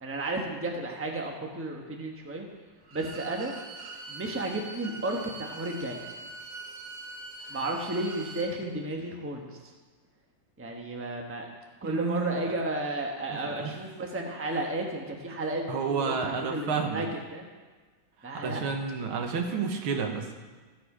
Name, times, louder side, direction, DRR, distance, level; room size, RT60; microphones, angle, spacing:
voice 1, 0.0-2.5 2.9-3.5 4.1-6.0 7.5-9.5 10.6-11.5 11.8-17.1 17.3-17.4 18.2-18.6, right 2 dB, 10° right, 1 dB, 0.8 m, -33 dB
Bowed string instrument, 2.8-8.5, right 3 dB, 45° right, 1.1 m, -43 dB
voice 2, 11.8-12.4 13.3-13.7 15.7-17.1 18.4-20.3, right 5 dB, 90° right, 3 dB, 2.1 m, -30 dB
14.5 x 7.2 x 5.0 m, 1.4 s
omnidirectional pair, 2.2 m